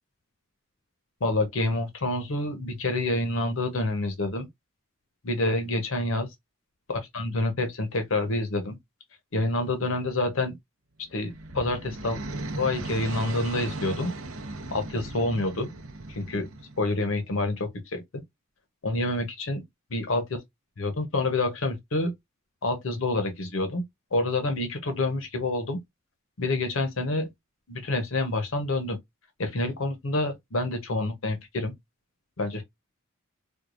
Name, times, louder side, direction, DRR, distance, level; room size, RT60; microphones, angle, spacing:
voice 1, 1.2-4.5 5.2-6.3 6.9-8.8 9.3-10.5 11.1-12.2 12.6-14.1 14.7-15.7 16.1-16.5 16.8-18.2 18.8-19.6 19.9-20.2 20.8-22.1 22.6-23.8 24.1-25.8 26.4-27.3 27.7-29.0 29.4-31.7 32.4-32.6, left 2 dB, 70° left, 0.8 m, -27 dB
sound 1, 11.0-17.1, right 2 dB, 75° right, 0.7 m, -37 dB
4.5 x 2.3 x 2.4 m
head